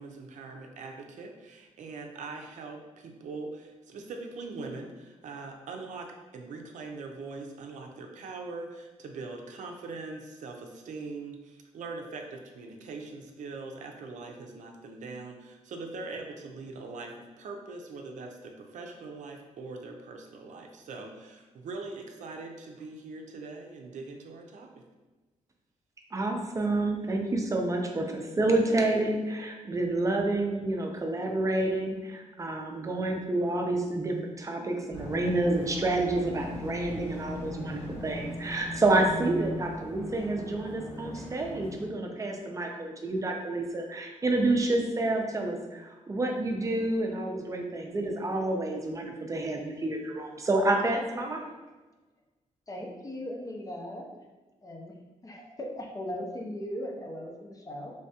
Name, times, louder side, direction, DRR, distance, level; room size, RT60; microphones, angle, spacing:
voice 1, 0.0-24.8, right 3 dB, 75° right, 3 dB, 0.5 m, -42 dB
voice 2, 26.1-51.5, right 2 dB, 25° right, 2 dB, 0.5 m, -29 dB
sound 1, 34.9-41.9, left 1 dB, 75° left, 1.4 m, -39 dB
voice 3, 52.7-54.2 54.6-54.9 55.2-57.9, left 1 dB, 25° left, 0 dB, 0.6 m, -38 dB
3.4 x 3.2 x 2.8 m, 1.2 s
cardioid pair, 115°, 13 cm